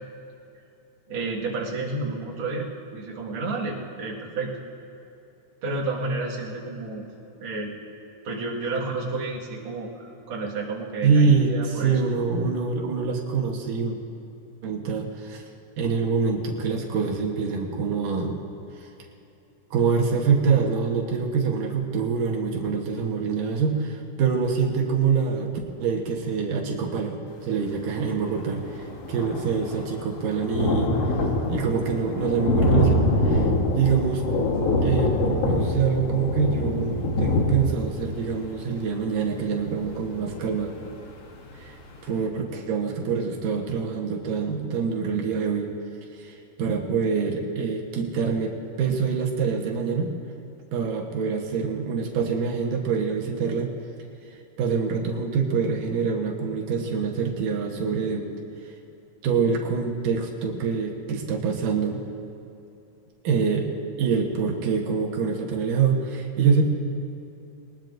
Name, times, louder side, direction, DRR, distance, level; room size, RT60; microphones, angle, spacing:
voice 1, 1.1-4.5 5.6-7.0 7.4-7.7 8.2-12.1, right 3 dB, 45° right, -4 dB, 2.2 m, -31 dB
voice 2, 11.0-14.0 14.6-15.5 15.8-18.4 18.8-18.9 19.7-25.5 25.8-33.5 33.7-34.3 34.8-40.9 41.5-41.8 42.0-45.7 46.1-50.1 50.7-53.7 54.6-58.3 59.2-62.0 63.2-63.7 64.0-66.6, right 5 dB, 75° right, 1 dB, 2.8 m, -25 dB
Thunder, 28.1-28.2 28.4-41.0 41.5-41.6 41.9-42.0, left 1 dB, 55° left, 2.1 m, -25 dB
21.5 x 19.5 x 2.6 m, 2.8 s
omnidirectional pair, 3.8 m